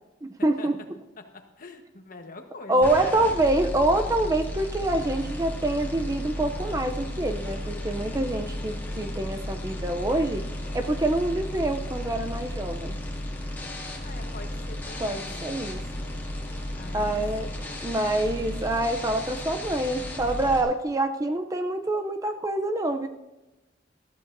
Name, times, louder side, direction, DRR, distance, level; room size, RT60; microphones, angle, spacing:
voice 1, 0.2-0.8 2.7-10.4 10.7-13.0 15.0-15.8 16.9-17.5 17.8-23.1, right 1 dB, 20° right, 6 dB, 0.5 m, -26 dB
voice 2, 1.2-3.3 14.0-15.7 16.7-17.5, left 2 dB, 45° left, 5 dB, 1.2 m, -44 dB
sound 1, 2.8-20.6, left 1 dB, 10° left, 2.1 m, -34 dB
20.0 x 13.0 x 2.6 m, 1.0 s
head